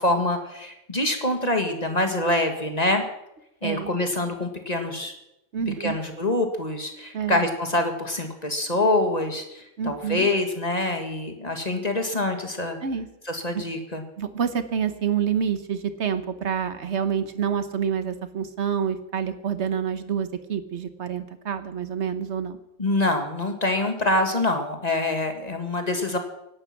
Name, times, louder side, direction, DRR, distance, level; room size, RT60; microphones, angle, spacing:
voice 1, 0.0-3.0 3.6-5.1 5.8-12.8 13.3-14.0 22.8-26.2, left 2 dB, 30° left, 5 dB, 1.8 m, -25 dB
voice 2, 3.6-3.9 5.5-6.0 7.1-7.4 9.8-10.3 12.8-13.1 13.5-13.6 14.2-22.6, right 7 dB, 55° right, 10 dB, 1.3 m, -27 dB
17.0 x 11.5 x 5.9 m, 0.86 s
omnidirectional pair, 1.4 m